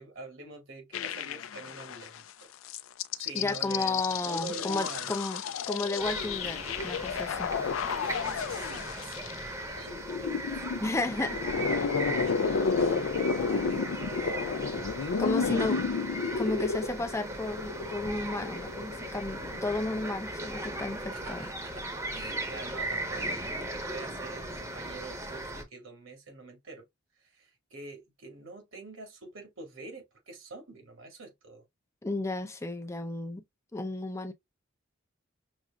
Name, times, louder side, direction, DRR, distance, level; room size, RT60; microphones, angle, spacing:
voice 1, 0.0-2.5 3.2-5.2 7.8-11.4 12.0-17.0 21.1-26.9 27.2-31.6, right 3 dB, 75° right, 2.0 m, -46 dB
sound 1, 0.9-2.2 2.6-19.8, left 5 dB, 80° left, 0.4 m, -32 dB
voice 2, 3.3-7.5 10.8-11.4 11.7-11.9 15.2-15.8 16.4-21.5 32.0-33.4 33.7-34.3, left 2 dB, 15° left, 0.5 m, -33 dB
sound 2, 6.0-25.6, right 1 dB, 15° right, 0.9 m, -38 dB
6.1 x 2.5 x 2.2 m
head